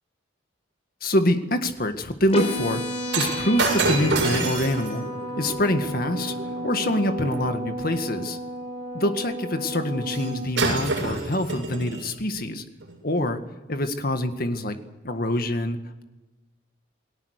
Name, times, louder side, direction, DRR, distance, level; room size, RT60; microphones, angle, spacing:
voice 1, 1.0-2.8 3.1-5.1 5.4-6.4 6.6-8.4 8.9-12.6 13.0-13.4 13.7-14.8 15.0-16.0, left 1 dB, 50° left, 7 dB, 1.8 m, -25 dB
sound 1, 2.3-10.3, equal, 35° left, 5.1 m, -32 dB
Shatter, 3.1-7.5 10.1-10.3 10.6-12.1 12.8-13.0, right 3 dB, 70° right, 7.2 m, -28 dB
28.5 x 18.5 x 6.6 m, 1.1 s
head